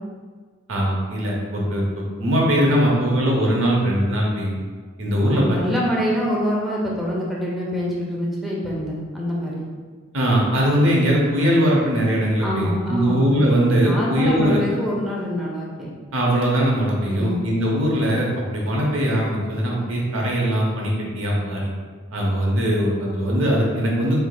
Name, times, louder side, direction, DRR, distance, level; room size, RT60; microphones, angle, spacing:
voice 1, 0.7-4.6 5.0-5.6 10.1-14.6 16.1-21.7 22.1-24.3, equal, 80° right, -3 dB, 0.8 m, -20 dB
voice 2, 5.2-9.7 12.4-13.2 13.8-15.9 17.1-17.4, equal, ahead, -5 dB, 0.5 m, -25 dB
3.5 x 3.4 x 2.3 m, 1.5 s
head